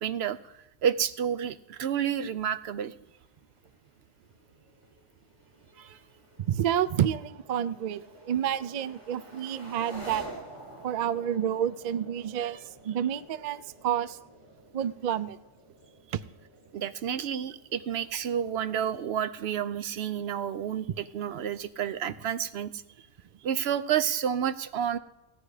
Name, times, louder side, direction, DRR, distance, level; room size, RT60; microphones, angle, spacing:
voice 1, 0.0-2.9 5.8-6.0 12.4-12.6 16.7-22.8 23.4-25.0, right 9 dB, 75° right, 13 dB, 0.9 m, -30 dB
sound 1, 3.0-21.8, right 1 dB, 25° right, 3.1 m, -51 dB
voice 2, 6.5-10.3 10.8-12.6 12.8-14.2 14.7-15.4 16.1-16.2, right 10 dB, 55° right, 16 dB, 0.5 m, -29 dB
16.5 x 9.3 x 4.9 m, 0.98 s
omnidirectional pair, 1.1 m